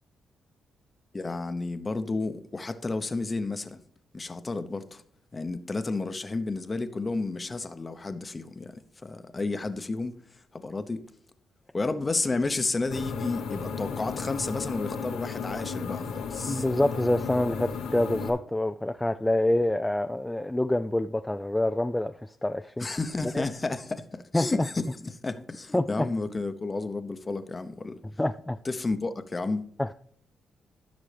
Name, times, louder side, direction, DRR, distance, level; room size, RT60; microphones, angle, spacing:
voice 1, 1.1-3.8 4.1-5.0 5.3-11.0 11.7-16.6 22.8-28.0 28.6-29.6, left 3 dB, 30° left, 0.8 m, -32 dB
sound 1, 12.9-18.3, left 5 dB, 90° left, 1.1 m, -34 dB
voice 2, 16.5-22.9 23.3-23.4 24.3-24.7 25.7-26.1 28.2-28.6 29.8-29.9, left 1 dB, 10° left, 0.3 m, -26 dB
14.0 x 6.0 x 3.4 m
cardioid pair, 75°, 0 cm